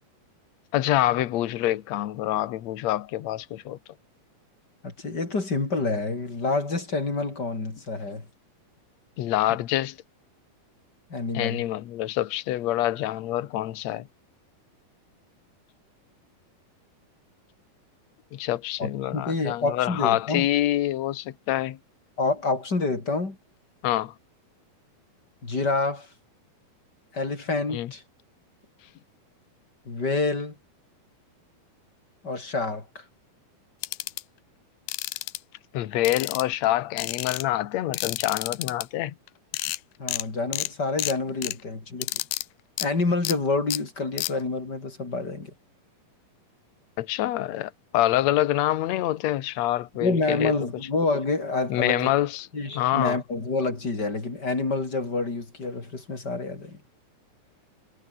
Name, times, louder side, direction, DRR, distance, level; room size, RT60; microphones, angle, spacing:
voice 1, 0.7-3.8 9.2-10.0 11.3-14.1 18.3-21.8 23.8-24.1 27.7-27.9 35.7-39.2 47.0-50.5 51.7-52.5 52.7-53.2, left 14 dB, 60° left, 2.0 m, -26 dB
voice 2, 4.8-8.3 11.1-11.6 18.8-20.5 22.2-23.4 25.4-26.1 27.1-28.0 29.9-30.5 32.2-33.0 40.0-42.2 42.8-45.5 50.0-52.1 52.5-56.8, left 3 dB, 25° left, 4.7 m, -28 dB
sound 1, 33.8-34.2 34.9-35.4 36.0-36.6 37.0-37.4 37.9-38.8 39.3-39.4 39.5-39.8 40.1-40.2 40.5-40.7 41.0-41.5 42.0-42.4 42.8-42.9 43.2-43.3 43.7-43.8 44.2-44.3, left 18 dB, 90° left, 2.7 m, -30 dB
omnidirectional pair, 4.4 m